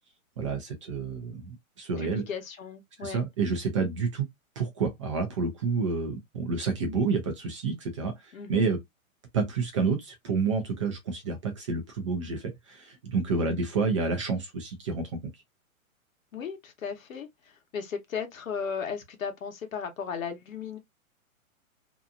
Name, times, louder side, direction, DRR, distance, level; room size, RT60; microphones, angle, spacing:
voice 1, 0.4-2.2 3.0-4.2 4.6-8.8 9.3-15.1, right 4 dB, 25° right, 0.4 m, -29 dB
voice 2, 2.0-3.2 8.3-8.6 16.3-20.8, left 6 dB, 70° left, 1.1 m, -36 dB
2.7 x 2.4 x 2.4 m
hypercardioid pair, 135°, 42 cm